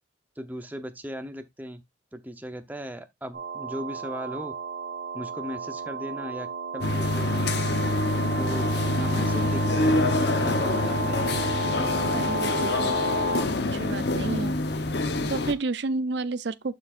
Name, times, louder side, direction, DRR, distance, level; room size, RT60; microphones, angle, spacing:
voice 1, 0.4-1.8 2.1-4.5 5.1-6.5 6.7-7.5 8.3-8.7 8.9-10.1 10.3-11.4, equal, 10° right, 0.8 m, -37 dB
sound 1, 3.3-13.4, right 2 dB, 50° right, 1.8 m, -32 dB
sound 2, 6.8-15.5, left 2 dB, 60° left, 1.0 m, -26 dB
voice 2, 12.1-13.0 13.7-14.5 15.3-16.7, right 3 dB, 65° right, 0.6 m, -30 dB
11.5 x 4.6 x 2.5 m
head